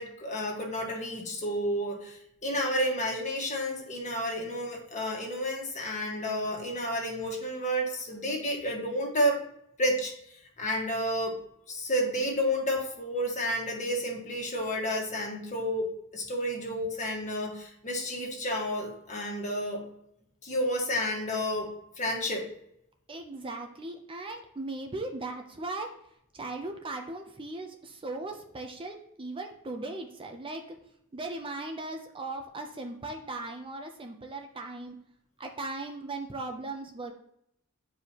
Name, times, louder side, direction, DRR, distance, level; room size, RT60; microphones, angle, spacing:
voice 1, 0.0-9.4 9.8-10.1 10.6-11.4 11.7-19.8 20.4-21.7 22.0-22.5, equal, 35° left, 0 dB, 1.6 m, -31 dB
voice 2, 23.1-25.9 26.3-30.6 31.1-35.0 35.4-37.1, right 2 dB, 25° right, 4 dB, 0.6 m, -38 dB
9.6 x 4.9 x 2.9 m, 0.74 s
head